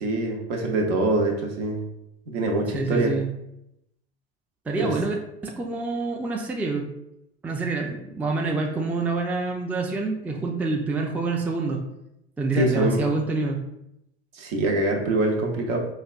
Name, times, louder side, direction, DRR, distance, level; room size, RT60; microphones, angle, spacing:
voice 1, 0.0-1.8 2.3-3.1 4.8-4.9 12.5-13.1 14.3-15.8, right 2 dB, 70° right, 1 dB, 0.8 m, -24 dB
voice 2, 2.7-3.3 4.7-5.1 5.4-6.9 7.4-11.8 12.4-13.6, right 3 dB, 5° right, 0 dB, 0.3 m, -27 dB
4.1 x 2.2 x 2.4 m, 0.83 s
hypercardioid pair, 85°, 31 cm